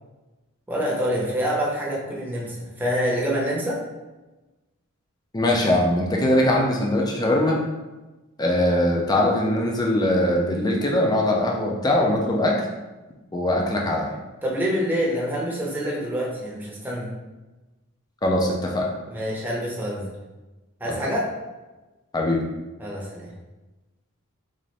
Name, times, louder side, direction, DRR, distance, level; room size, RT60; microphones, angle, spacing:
voice 1, 0.7-3.8 14.4-17.1 19.1-20.1 20.8-21.3 22.8-23.3, equal, 10° right, -5 dB, 0.8 m, -26 dB
voice 2, 5.3-7.6 8.4-12.6 13.3-14.1 18.2-18.9 22.1-22.4, left 1 dB, 20° left, 0 dB, 0.4 m, -21 dB
3.9 x 2.5 x 3.2 m, 1.1 s
head